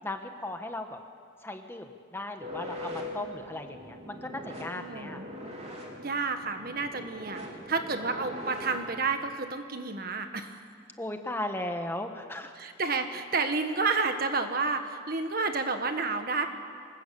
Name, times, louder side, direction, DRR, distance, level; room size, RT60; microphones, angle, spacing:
voice 1, 0.0-1.0 1.4-5.3 8.2-8.7 11.0-12.6, left 1 dB, 10° left, 5 dB, 1.3 m, -37 dB
sound 1, 2.4-9.1, equal, 35° right, 3.6 m, -41 dB
voice 2, 4.7-5.2 6.0-7.4 7.7-10.6 12.6-16.5, right 4 dB, 50° right, 7 dB, 1.6 m, -30 dB
25.0 x 20.5 x 8.5 m, 2.2 s
head